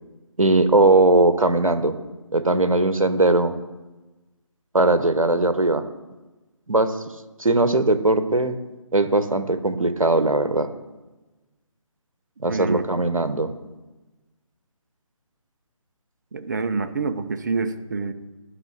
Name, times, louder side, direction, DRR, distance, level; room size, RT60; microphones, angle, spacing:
voice 1, 0.4-2.0 2.3-3.5 4.7-5.8 6.7-7.0 7.4-8.6 8.9-10.7 12.4-13.5, right 2 dB, 85° right, 11 dB, 1.0 m, -19 dB
voice 2, 12.5-12.8 16.3-18.1, right 4 dB, 35° right, 10 dB, 0.6 m, -26 dB
11.5 x 5.8 x 6.2 m, 1.2 s
figure-of-eight pair, 150°, 17 cm